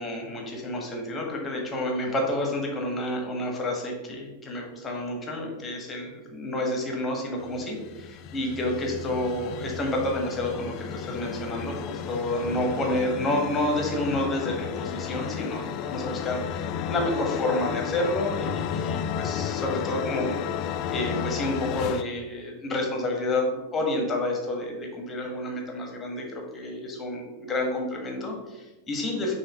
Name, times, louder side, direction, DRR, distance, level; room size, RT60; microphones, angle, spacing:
voice 1, 0.0-29.4, left 1 dB, 20° left, 1 dB, 1.4 m, -29 dB
sound 1, 7.4-22.0, left 8 dB, 40° left, 0.3 m, -33 dB
6.4 x 2.9 x 5.2 m, 1.1 s
figure-of-eight pair, 90°, 0 cm